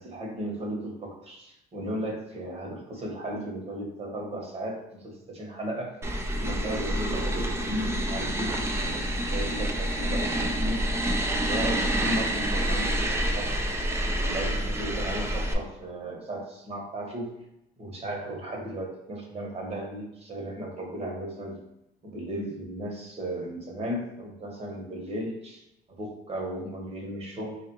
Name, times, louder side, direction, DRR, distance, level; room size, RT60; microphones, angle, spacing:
voice 1, 0.0-6.0 6.4-10.8 11.3-13.7 14.2-17.4 17.8-21.6 22.0-27.6, right 1 dB, 35° right, 0 dB, 1.2 m, -35 dB
sound 1, 6.0-15.5, right 1 dB, 15° right, 0.5 m, -28 dB
3.5 x 2.5 x 4.5 m, 0.83 s
cardioid pair, 110°, 17 cm